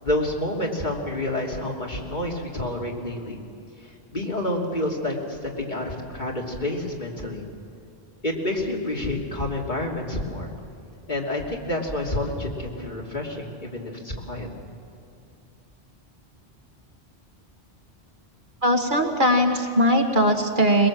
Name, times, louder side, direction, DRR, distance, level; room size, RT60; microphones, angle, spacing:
voice 1, 0.0-3.4 3.8-7.4 8.2-10.5 11.1-14.5, left 1 dB, 45° left, -2 dB, 3.2 m, -29 dB
voice 2, 18.6-20.9, equal, 50° right, 3 dB, 1.8 m, -20 dB
22.5 x 21.5 x 7.6 m, 2.5 s
omnidirectional pair, 1.1 m